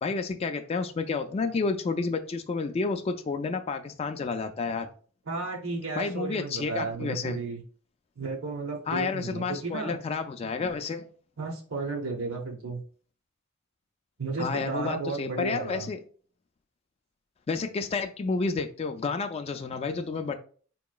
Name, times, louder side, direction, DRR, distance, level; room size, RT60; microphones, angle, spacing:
voice 1, 0.0-4.9 6.0-7.4 8.9-11.0 14.4-16.0 17.5-20.3, left 4 dB, 30° left, 6 dB, 0.3 m, -30 dB
voice 2, 5.3-7.6 8.2-10.0 11.4-12.8 14.2-15.9, right 3 dB, 80° right, 0 dB, 0.7 m, -33 dB
4.5 x 2.9 x 2.3 m, 0.42 s
head